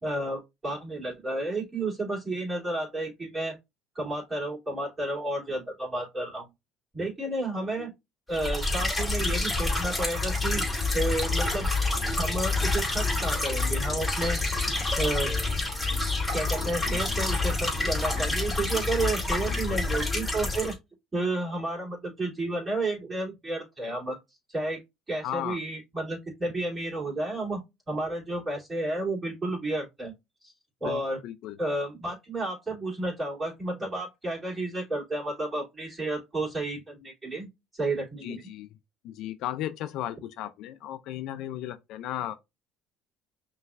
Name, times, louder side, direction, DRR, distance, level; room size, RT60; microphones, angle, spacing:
voice 1, 0.0-3.6 3.9-6.5 6.9-7.9 8.3-11.7 12.1-14.4 15.0-15.3 16.3-20.8 21.1-24.2 24.5-24.8 25.1-27.6 27.9-30.1 30.8-31.2 31.6-37.5 37.7-38.4, right 2 dB, 15° right, 3.2 m, -31 dB
sound 1, 8.3-20.7, left 3 dB, 5° left, 2.8 m, -28 dB
voice 2, 16.9-17.3 19.5-19.9 25.2-25.6 30.8-31.6 38.2-38.7 39.0-42.3, left 12 dB, 65° left, 0.5 m, -36 dB
5.6 x 3.2 x 2.5 m
cardioid pair, 115°, 0 cm